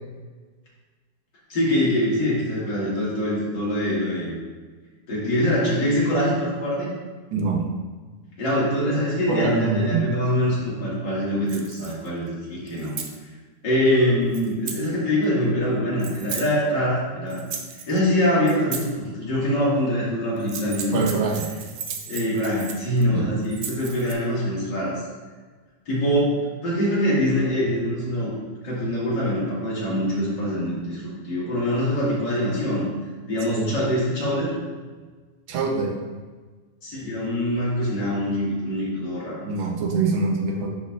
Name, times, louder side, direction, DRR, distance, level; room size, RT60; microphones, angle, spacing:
voice 1, 1.5-4.3 5.1-6.9 8.4-12.9 13.6-17.4 17.9-21.1 22.1-25.0 25.9-26.3 26.6-28.3 28.6-32.9 33.3-34.5 36.8-39.4, equal, 70° left, -7 dB, 2.6 m, -24 dB
voice 2, 7.3-7.7 9.3-10.1 20.9-21.6 23.1-23.3 33.5-33.7 35.5-35.9 39.4-40.7, right 4 dB, 85° right, 1 dB, 1.6 m, -24 dB
sound 1, 11.5-12.1 12.7-13.2 14.3-14.9 16.0-16.5 17.3-18.0 18.5-18.9 20.4-23.0 23.4-24.1, right 7 dB, 65° right, 1.0 m, -35 dB
10.5 x 4.4 x 2.4 m, 1.4 s
omnidirectional pair, 2.0 m